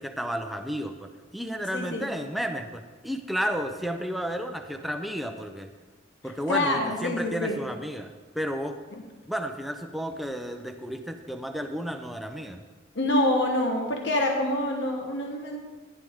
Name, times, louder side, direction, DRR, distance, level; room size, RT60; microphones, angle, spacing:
voice 1, 0.0-5.7 6.2-8.8 9.3-12.6, equal, ahead, 5 dB, 0.6 m, -32 dB
voice 2, 1.7-2.1 6.5-7.6 12.9-15.6, left 1 dB, 65° left, 1 dB, 1.2 m, -26 dB
14.5 x 10.5 x 3.6 m, 1.4 s
head